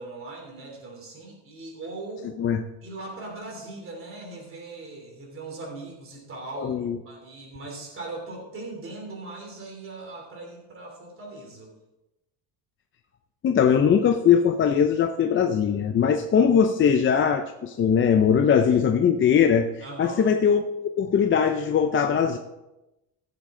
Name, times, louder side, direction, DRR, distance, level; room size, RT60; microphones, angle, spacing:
voice 1, 0.0-2.4 2.8-6.8 7.0-11.7 19.8-20.3, right 2 dB, 35° right, 0 dB, 3.3 m, -39 dB
voice 2, 6.6-7.0 13.4-20.6 21.0-22.4, left 7 dB, 35° left, 6 dB, 0.5 m, -21 dB
15.5 x 7.4 x 3.7 m, 0.98 s
cardioid pair, 145°, 37 cm